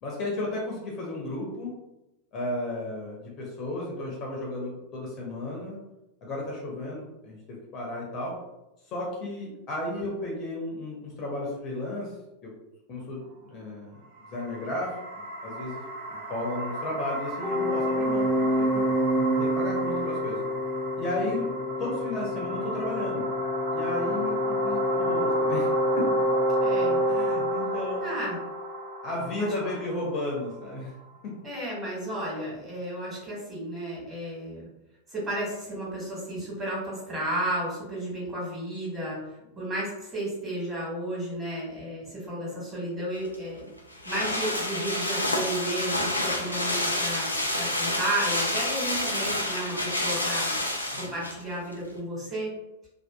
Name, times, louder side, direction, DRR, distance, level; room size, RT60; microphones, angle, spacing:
voice 1, 0.0-1.7 2.3-5.8 6.2-8.4 8.9-12.1 12.4-12.5 12.9-14.0 14.3-18.9 19.4-20.4 21.0-21.5 21.8-23.3 23.7-26.1 27.1-28.0 29.0-30.9 31.2-31.4 50.9-51.1, left 2 dB, 35° left, -3 dB, 0.7 m, -34 dB
sound 1, 14.0-31.2, right 1 dB, 50° right, 0.5 m, -35 dB
sound 2, 17.4-29.0, equal, 5° left, 0.4 m, -27 dB
voice 2, 26.6-27.0 28.0-28.4 29.4-29.7 31.4-34.7 35.1-39.2 39.5-43.7 44.0-50.5 51.0-52.5, right 1 dB, 20° right, -6 dB, 1.4 m, -33 dB
sound 3, 43.2-51.4 51.7-51.8, left 1 dB, 85° left, 0.4 m, -28 dB
2.7 x 2.3 x 2.2 m, 0.96 s
figure-of-eight pair, 90°, 0 cm